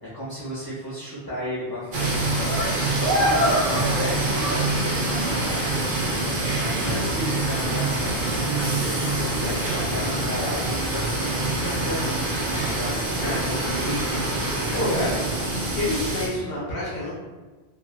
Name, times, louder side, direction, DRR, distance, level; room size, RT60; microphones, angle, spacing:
voice 1, 0.0-2.7 3.0-12.2 12.6-13.4 14.7-15.2, equal, 30° left, -9 dB, 0.5 m, -34 dB
sound 1, 1.9-16.3, right 2 dB, 55° right, 0.7 m, -25 dB
voice 2, 13.2-14.2 14.7-15.2 15.7-17.1, left 1 dB, 90° left, -7 dB, 1.1 m, -29 dB
3.3 x 2.3 x 2.2 m, 1.3 s
omnidirectional pair, 1.1 m